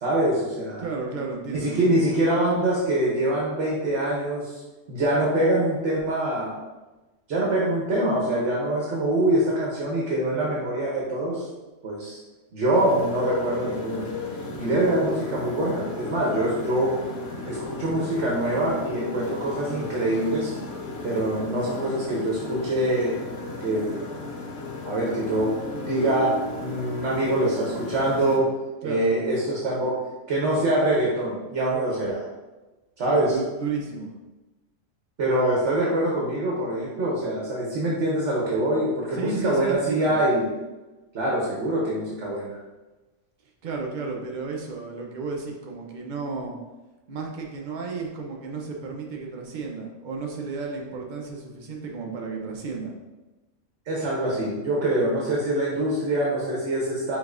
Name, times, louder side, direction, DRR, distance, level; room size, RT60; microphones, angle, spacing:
voice 1, 0.0-0.8 1.5-4.6 4.9-6.6 7.3-11.5 11.8-12.2 12.5-14.1 14.6-16.9 17.4-20.5 21.0-23.2 23.6-24.0 24.8-28.5 28.8-30.0 30.3-32.3 33.0-33.3 35.2-40.5 41.1-42.6 53.9-57.2, right 1 dB, 60° right, -4 dB, 1.1 m, -24 dB
voice 2, 0.8-2.0 28.8-29.1 33.1-34.1 39.1-40.2 43.6-46.5 47.1-52.9, right 4 dB, 45° right, 0 dB, 0.7 m, -33 dB
Motorcycle, 12.7-28.4, left 3 dB, 65° left, 1.0 m, -34 dB
5.0 x 3.5 x 2.5 m, 1.1 s
omnidirectional pair, 1.4 m